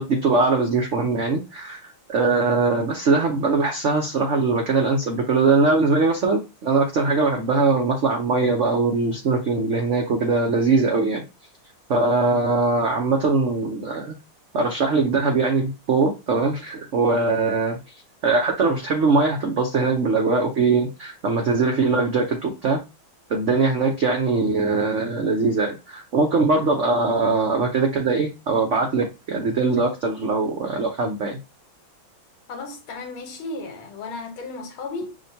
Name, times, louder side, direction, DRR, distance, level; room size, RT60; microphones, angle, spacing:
voice 1, 0.0-11.2 11.9-14.1 14.5-17.8 18.2-22.8 23.3-31.4, right 3 dB, 85° right, 0.6 m, -21 dB
voice 2, 32.5-35.1, left 3 dB, 80° left, 1.8 m, -34 dB
6.0 x 2.2 x 2.7 m
omnidirectional pair, 2.3 m